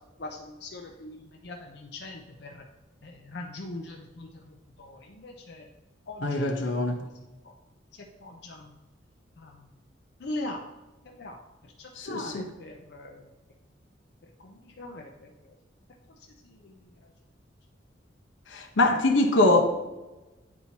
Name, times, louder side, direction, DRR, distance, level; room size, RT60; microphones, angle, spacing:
voice 1, 0.2-2.6 3.0-5.7 6.1-7.1 7.4-7.5 8.2-8.7 9.4-9.6 10.2-10.6 11.0-11.4 11.6-13.3 14.4-15.6 16.4-16.8, left 2 dB, 60° left, 0.6 m, -41 dB
voice 2, 6.2-7.0 12.0-12.5 18.5-19.6, left 2 dB, 85° left, 0.9 m, -23 dB
9.6 x 4.4 x 2.8 m
head